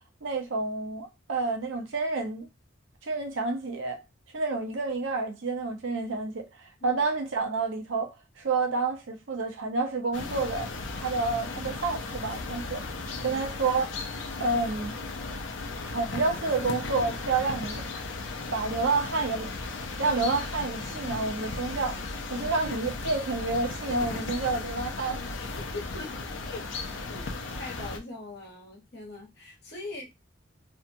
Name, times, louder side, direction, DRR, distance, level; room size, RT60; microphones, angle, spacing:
voice 1, 0.2-2.5 3.0-4.0 4.3-12.9 13.2-13.9 14.4-14.9 15.9-17.8 18.5-19.5 20.0-22.0 22.3-25.2, right 3 dB, 75° right, 0.7 m, -29 dB
sound 1, 10.1-28.0, left 3 dB, 70° left, 0.5 m, -36 dB
voice 2, 25.7-26.1 26.4-27.3 27.6-30.1, left 2 dB, 55° left, 1.0 m, -41 dB
2.7 x 2.2 x 2.6 m
head